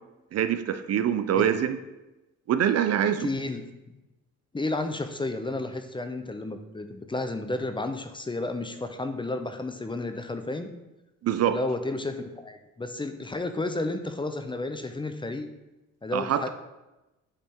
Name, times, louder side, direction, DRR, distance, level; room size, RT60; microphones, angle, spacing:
voice 1, 0.3-1.8 2.5-3.3 11.2-11.6 16.1-16.5, right 9 dB, 55° right, 10 dB, 0.5 m, -24 dB
voice 2, 3.2-4.0 4.5-10.7 11.5-15.5 16.0-16.5, left 2 dB, 15° left, 8 dB, 0.6 m, -32 dB
8.5 x 3.4 x 4.4 m, 1.0 s
cardioid pair, 90°, 30 cm